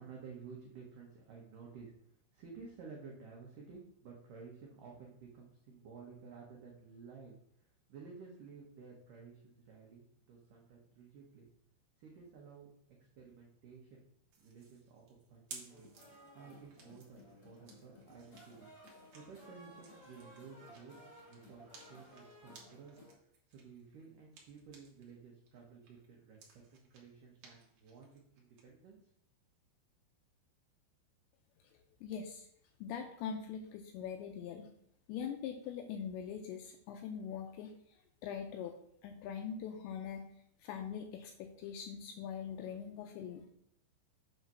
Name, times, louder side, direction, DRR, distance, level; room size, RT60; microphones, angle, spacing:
voice 1, 0.0-11.5 12.0-12.7 13.0-14.0 14.4-15.0 15.3-15.9 16.3-18.7 19.1-20.9 21.3-23.0 23.5-26.4 26.7-29.0, right 5 dB, 80° right, -2 dB, 1.8 m, -54 dB
sound 1, 14.3-25.1 25.5-28.6, right 4 dB, 60° right, 1.8 m, -58 dB
sound 2, 15.7-23.2, equal, 50° left, 1.2 m, -58 dB
voice 2, 32.0-32.5 32.8-34.7 35.1-37.7 38.2-38.7 39.0-40.3 40.6-43.5, left 7 dB, 80° left, 5 dB, 2.6 m, -42 dB
8.0 x 4.0 x 6.1 m, 0.70 s
omnidirectional pair, 5.7 m